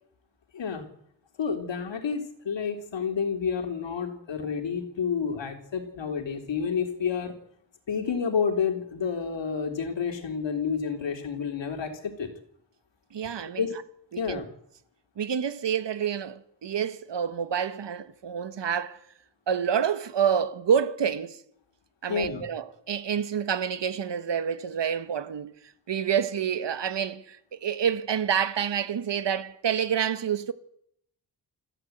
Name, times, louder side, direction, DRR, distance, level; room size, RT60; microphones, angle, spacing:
voice 1, 0.5-0.8 1.4-7.4 7.9-12.3 13.2-13.3 13.6-13.7 14.2-14.5 22.1-22.4, left 6 dB, 90° left, 3.5 m, -29 dB
voice 2, 13.1-13.6 14.3-14.4 15.2-19.0 19.5-21.4 22.0-25.5 25.9-30.5, right 8 dB, 75° right, 1.5 m, -28 dB
25.5 x 15.0 x 8.1 m
wide cardioid pair, 150°, 43 cm